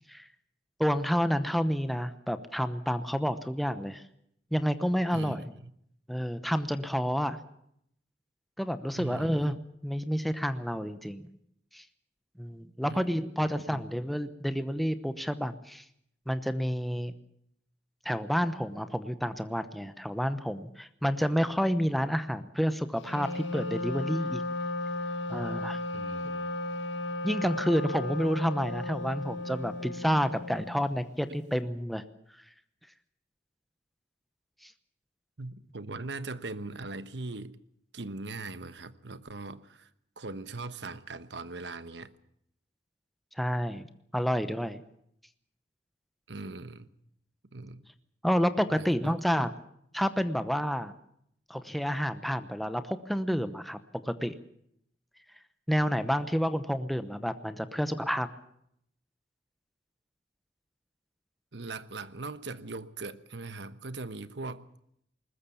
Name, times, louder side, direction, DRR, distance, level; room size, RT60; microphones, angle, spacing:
voice 1, 0.8-4.0 4.5-5.5 6.1-7.4 8.6-9.6 9.8-11.3 11.7-11.8 12.4-15.8 16.3-17.1 18.0-24.4 25.3-25.8 26.2-26.3 27.2-32.0 34.6-34.7 43.4-43.8 44.1-44.8 48.2-49.5 49.9-50.9 51.5-53.8 54.1-54.3 55.7-58.3, equal, ahead, 0.9 m, -29 dB
voice 2, 5.1-5.7 9.0-9.3 12.8-13.3 13.7-13.8 25.9-26.5 35.4-37.6 37.9-39.9 40.2-42.1 46.3-46.9 47.5-47.9 48.7-49.2 61.5-64.7, right 3 dB, 70° right, 1.2 m, -40 dB
Wind instrument woodwind instrument, 23.0-30.9, left 2 dB, 80° left, 2.2 m, -35 dB
21.0 x 20.0 x 7.1 m
head